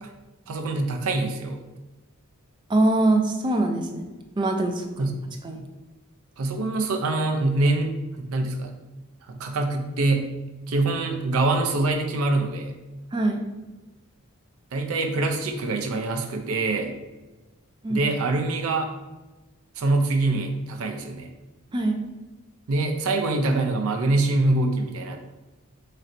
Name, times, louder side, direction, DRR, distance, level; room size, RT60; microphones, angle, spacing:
voice 1, 0.5-1.6 5.0-5.4 6.4-8.7 9.3-10.3 10.7-12.7 14.7-16.9 17.9-18.9 19.8-21.3 22.7-25.2, right 2 dB, 80° right, 4 dB, 0.5 m, -24 dB
voice 2, 2.7-4.1 4.4-5.0 5.4-5.6 13.1-13.5 17.8-18.0 21.7-22.0, right 2 dB, 20° right, 3 dB, 0.3 m, -23 dB
4.1 x 3.1 x 2.6 m, 1.2 s
head